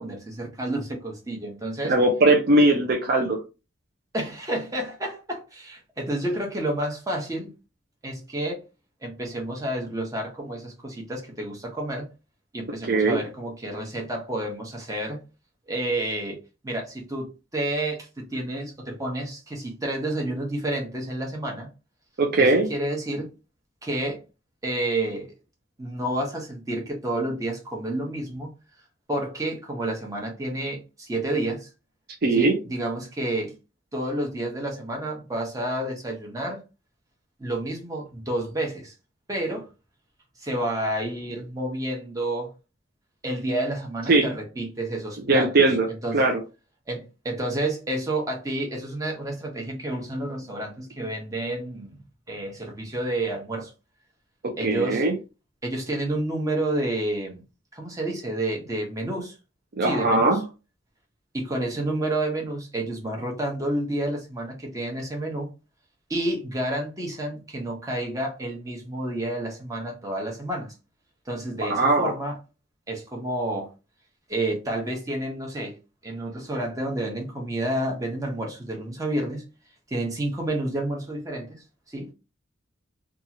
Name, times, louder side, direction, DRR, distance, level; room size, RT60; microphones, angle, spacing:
voice 1, 0.0-1.9 4.1-7.5 8.0-8.6 9.0-12.1 12.5-15.2 15.7-21.7 22.4-23.3 23.8-24.2 24.6-25.3 25.8-28.5 29.1-31.7 32.3-33.5 33.9-36.6 37.4-38.9 39.3-39.7 40.4-42.5 43.2-45.5 45.9-46.2 46.9-52.0 52.3-53.7 54.6-55.0 55.6-57.4 57.7-59.3 59.8-60.4 61.3-65.5 66.1-70.7 71.3-72.4 72.9-73.7 74.3-75.8 76.0-79.5 79.9-82.1, right 1 dB, 20° right, 0.8 m, -30 dB
voice 2, 1.9-3.4 12.8-13.2 22.2-22.7 32.2-32.5 44.1-44.3 45.3-45.9 46.1-46.4 54.4-55.1 59.8-60.4 71.6-72.1, right 2 dB, 55° right, 0.5 m, -20 dB
2.8 x 2.4 x 2.8 m
head